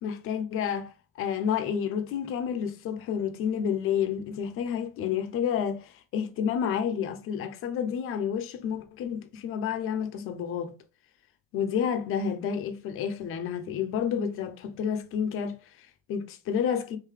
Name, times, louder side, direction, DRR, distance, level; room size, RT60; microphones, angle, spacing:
voice 1, 0.0-10.7 11.5-17.0, left 8 dB, 40° left, 0.7 m, -30 dB
3.8 x 2.7 x 3.2 m
hypercardioid pair, 80°, 34 cm